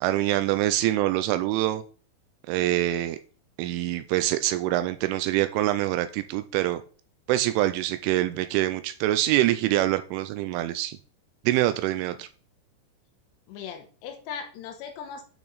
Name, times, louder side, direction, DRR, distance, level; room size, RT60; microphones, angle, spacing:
voice 1, 0.0-1.8 2.5-3.2 3.6-6.8 7.3-11.0 11.5-12.3, right 15 dB, 85° right, 11 dB, 2.9 m, -25 dB
voice 2, 13.5-15.2, left 7 dB, 75° left, 5 dB, 2.8 m, -38 dB
8.7 x 5.8 x 4.0 m, 0.41 s
omnidirectional pair, 5.7 m